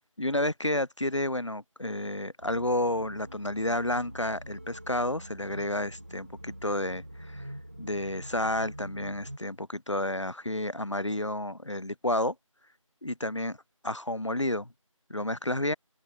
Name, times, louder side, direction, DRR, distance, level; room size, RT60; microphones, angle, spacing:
voice 1, 0.2-7.5 7.8-12.3 13.0-13.5 13.8-14.7 15.1-15.7, left 1 dB, 60° left, 1.5 m, -30 dB
sound 1, 2.4-9.4, right 1 dB, 25° right, 2.8 m, -44 dB
open air
figure-of-eight pair, 180°, 17 cm